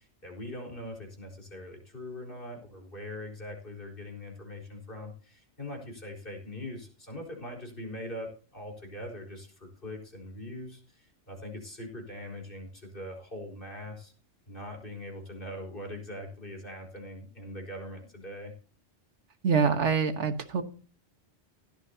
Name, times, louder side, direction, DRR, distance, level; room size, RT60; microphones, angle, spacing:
voice 1, 0.0-14.1 14.5-18.5, left 1 dB, 50° left, 0 dB, 4.6 m, -42 dB
voice 2, 19.4-20.6, right 6 dB, 80° right, 9 dB, 1.5 m, -25 dB
16.5 x 12.5 x 2.8 m, 0.38 s
omnidirectional pair, 1.2 m